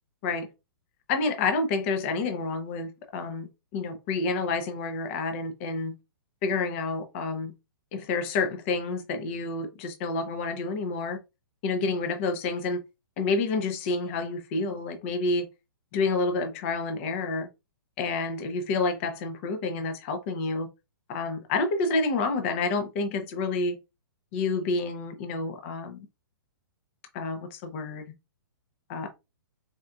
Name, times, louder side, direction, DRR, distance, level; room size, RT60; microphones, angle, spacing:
voice 1, 1.1-5.9 6.4-7.5 7.9-11.2 11.6-12.8 13.2-15.5 15.9-17.5 18.0-20.7 21.1-23.8 24.3-26.0 27.1-28.0 28.9-29.1, left 3 dB, 30° left, 0.6 m, -29 dB
4.2 x 2.3 x 2.4 m
hypercardioid pair, 155°, 12 cm